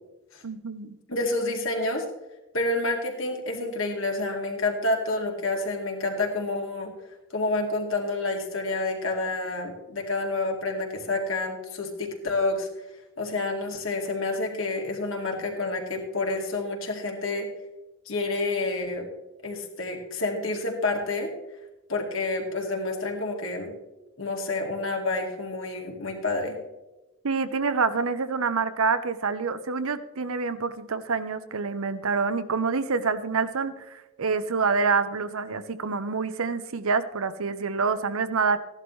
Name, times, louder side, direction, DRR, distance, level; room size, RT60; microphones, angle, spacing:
voice 1, 0.4-1.0 27.2-38.6, right 4 dB, 75° right, 12 dB, 0.8 m, -27 dB
voice 2, 1.1-2.1 2.5-6.9 7.3-12.9 13.2-17.5 18.1-19.1 19.4-21.3 21.9-23.7 24.2-26.6, left 2 dB, 65° left, 1 dB, 2.3 m, -29 dB
15.5 x 11.5 x 3.2 m, 1.0 s
head